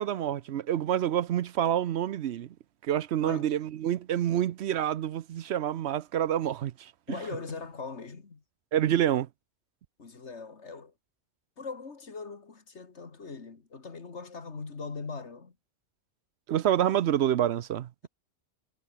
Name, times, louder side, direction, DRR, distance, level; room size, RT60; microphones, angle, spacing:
voice 1, 0.0-2.5 2.8-7.2 8.7-9.3 16.5-17.9, right 11 dB, 70° right, 0.9 m, -27 dB
voice 2, 3.2-3.5 7.1-8.4 10.0-10.9 11.6-15.6, left 4 dB, 75° left, 2.4 m, -40 dB
omnidirectional pair, 1.2 m